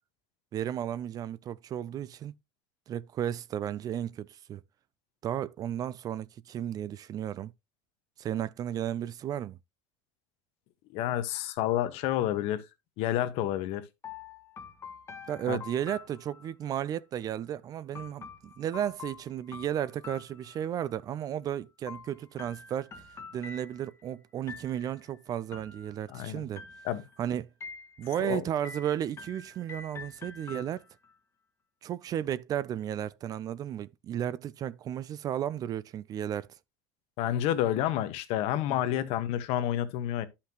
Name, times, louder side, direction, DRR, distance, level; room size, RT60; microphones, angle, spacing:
voice 1, 0.5-2.3 2.9-4.6 5.2-7.5 8.2-9.6 15.3-22.9 23.3-26.6 27.2-27.5 28.0-30.8 31.8-36.5, right 10 dB, 35° right, 0.4 m, -34 dB
voice 2, 10.9-12.6 13.0-13.8 15.5-15.6 26.1-26.4 26.8-27.0 28.2-28.4 37.2-40.3, left 12 dB, 60° left, 1.2 m, -29 dB
sound 1, 14.0-16.8 17.9-21.0 21.9-24.1 24.5-25.1 25.5-26.2 26.6-27.2 27.6-28.3 28.6-31.1, left 5 dB, 25° left, 1.1 m, -47 dB
11.5 x 5.8 x 2.9 m
cardioid pair, 145°, 11 cm